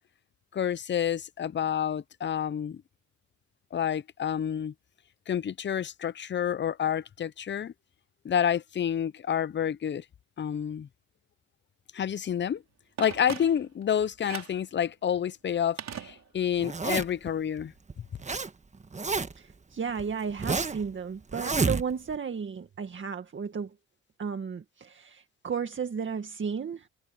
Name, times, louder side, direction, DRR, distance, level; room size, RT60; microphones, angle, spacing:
voice 1, 0.5-2.8 3.7-4.7 5.3-7.7 8.2-10.0 10.4-10.9 11.9-12.6 13.0-17.7, left 9 dB, 40° left, 0.7 m, -29 dB
Telephone, 13.0-13.8 14.2-14.7 15.8-16.6 16.9-17.0, right 9 dB, 60° right, 5.6 m, -40 dB
Zipper (clothing), 16.6-17.3 17.9-18.5 18.7-19.5 20.0-20.9 21.3-22.1, right 4 dB, 25° right, 1.5 m, -29 dB
voice 2, 19.3-23.8 24.2-26.9, right 6 dB, 40° right, 2.0 m, -34 dB
cardioid pair, 90°, 30 cm